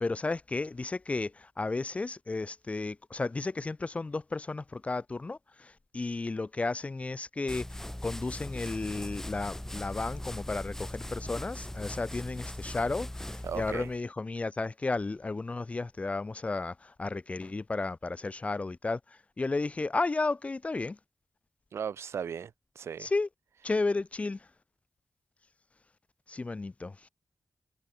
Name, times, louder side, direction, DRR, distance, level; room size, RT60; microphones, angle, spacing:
voice 1, 0.0-21.0 23.0-23.3 23.6-24.5 26.3-27.1, left 3 dB, 30° left, 0.5 m, -33 dB
sound 1, 7.5-14.0, left 1 dB, 10° left, 1.6 m, -40 dB
voice 2, 13.4-13.9 21.7-23.1, right 7 dB, 85° right, 0.9 m, -37 dB
cardioid pair, 75°, 4 cm